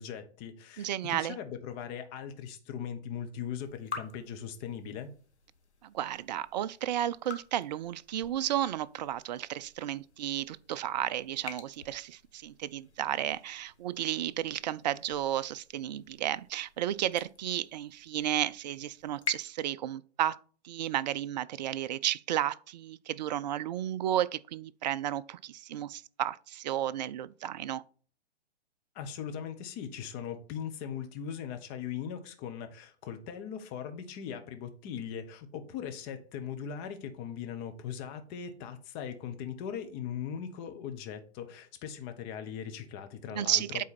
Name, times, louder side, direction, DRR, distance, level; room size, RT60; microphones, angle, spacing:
voice 1, 0.0-5.1 28.9-43.6, left 8 dB, 30° left, 1.1 m, -39 dB
voice 2, 0.8-1.4 5.8-27.8 43.3-43.8, right 12 dB, 40° right, 0.4 m, -33 dB
sound 1, 3.6-19.4, left 5 dB, 85° left, 1.2 m, -48 dB
8.3 x 4.1 x 4.2 m
figure-of-eight pair, 120°, 33 cm